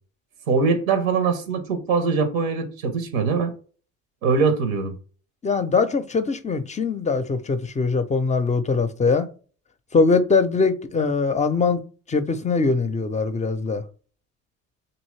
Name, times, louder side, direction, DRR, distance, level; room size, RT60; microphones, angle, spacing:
voice 1, 0.5-3.5 4.2-4.9, right 4 dB, 85° right, 0.6 m, -22 dB
voice 2, 5.4-9.3 9.9-11.8 12.1-13.8, left 4 dB, 20° left, 0.4 m, -22 dB
2.7 x 2.6 x 3.1 m
hypercardioid pair, 55°, 41 cm